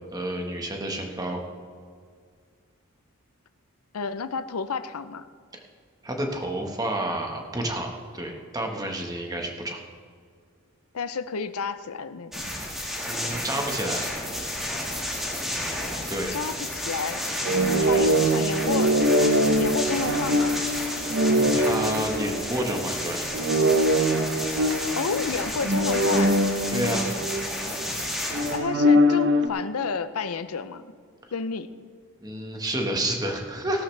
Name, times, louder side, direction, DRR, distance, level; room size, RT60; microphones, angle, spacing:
voice 1, 0.1-1.4 6.0-9.8 13.1-14.1 16.1-16.3 17.9-18.2 21.3-23.5 26.7-27.0 32.2-33.8, right 1 dB, 15° right, 2 dB, 1.3 m, -30 dB
voice 2, 3.9-5.2 10.9-12.4 16.3-17.2 17.7-19.0 19.6-20.6 25.0-26.4 28.5-30.9 31.3-31.7, left 5 dB, 85° left, 12 dB, 0.6 m, -31 dB
sound 1, 12.3-28.6, left 1 dB, ahead, 1.7 m, -32 dB
sound 2, 17.4-22.9 23.3-27.9 28.3-29.5, equal, 55° right, 0.8 m, -23 dB
16.5 x 12.5 x 3.3 m, 2.1 s
head